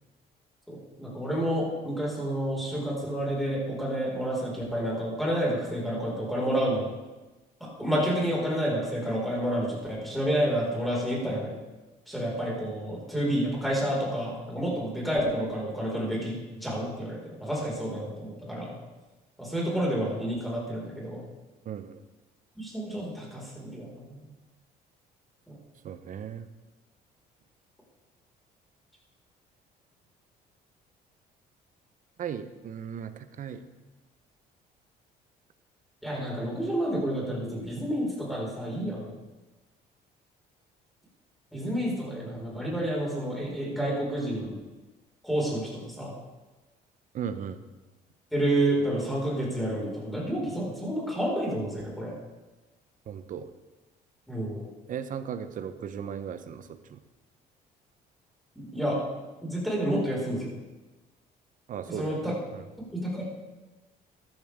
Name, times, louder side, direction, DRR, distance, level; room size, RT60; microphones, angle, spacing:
voice 1, 0.7-6.9 7.6-11.5 12.1-18.7 19.4-21.2 22.6-24.2 36.0-39.1 41.5-44.5 45.2-46.1 48.3-52.1 54.3-54.7 58.6-59.0 59.4-60.5 61.9-62.4 62.9-63.2, right 1 dB, ahead, -4 dB, 5.2 m, -29 dB
voice 2, 21.6-22.0 25.8-26.5 32.2-33.7 47.1-47.6 53.1-53.5 54.9-57.0 61.7-62.6, right 8 dB, 50° right, 10 dB, 0.9 m, -37 dB
14.0 x 12.0 x 3.7 m, 1.1 s
cardioid pair, 110°, 17 cm